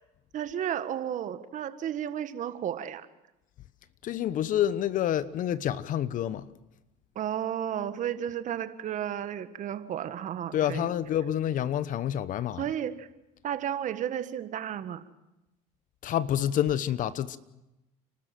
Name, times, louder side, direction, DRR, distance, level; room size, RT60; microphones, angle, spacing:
voice 1, 0.3-3.1 7.1-10.9 12.6-13.1 13.4-15.0, right 10 dB, 50° right, 1.6 m, -33 dB
voice 2, 4.0-6.5 10.5-12.6 16.0-17.4, left 11 dB, 55° left, 1.1 m, -28 dB
30.0 x 13.0 x 7.7 m
supercardioid pair, 85°, 17 cm